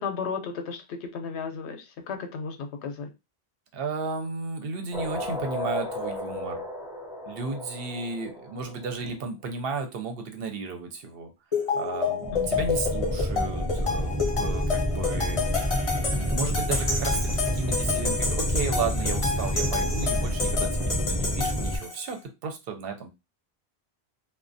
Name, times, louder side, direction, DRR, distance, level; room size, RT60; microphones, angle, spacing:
voice 1, 0.0-3.1 12.3-12.7, left 5 dB, 85° left, 6 dB, 0.8 m, -34 dB
voice 2, 3.7-6.6 7.3-11.3 11.7-15.4 16.1-23.1, right 4 dB, 65° right, 5 dB, 0.7 m, -34 dB
sound 1, 4.9-8.8 12.2-21.8, equal, 5° right, 0.5 m, -29 dB
sound 2, 11.5-22.1, left 4 dB, 40° left, 0.6 m, -29 dB
2.4 x 2.1 x 2.5 m, 0.25 s
omnidirectional pair, 1.1 m